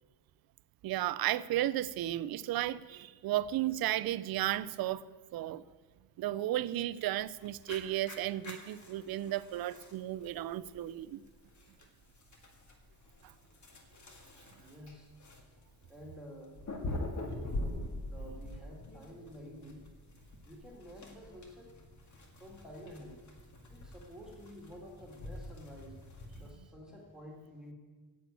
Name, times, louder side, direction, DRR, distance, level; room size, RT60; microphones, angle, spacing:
voice 1, 0.8-5.1 5.3-5.6 6.2-11.2 13.2-13.3, right 14 dB, 60° right, 16 dB, 0.5 m, -34 dB
sound 1, 7.2-26.5, left 1 dB, 45° left, 1.9 m, -45 dB
voice 2, 14.6-15.1 15.9-16.6 17.3-19.9 20.4-21.7 22.4-23.2 23.7-26.0 26.3-27.7, equal, ahead, -1 dB, 2.2 m, -50 dB
10.0 x 8.5 x 8.3 m, 1.4 s
cardioid pair, 145°, 41 cm